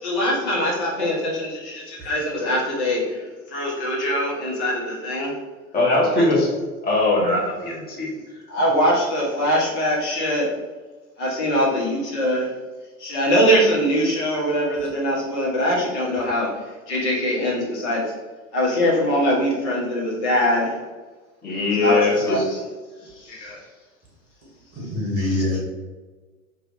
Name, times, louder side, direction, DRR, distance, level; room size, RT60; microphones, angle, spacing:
voice 1, 0.0-3.2 3.5-5.3 6.2-6.3 8.5-10.5 11.2-12.5 13.0-16.5 16.9-18.1 18.5-20.8 21.8-22.6 23.2-23.6, equal, 50° left, -4 dB, 1.4 m, -22 dB
voice 2, 5.7-6.5 6.8-8.1 21.4-22.4, left 2 dB, 20° left, -4 dB, 1.3 m, -20 dB
voice 3, 24.7-25.6, left 2 dB, 35° right, -1 dB, 0.9 m, -24 dB
3.1 x 2.5 x 3.6 m, 1.3 s
figure-of-eight pair, 85°, 42 cm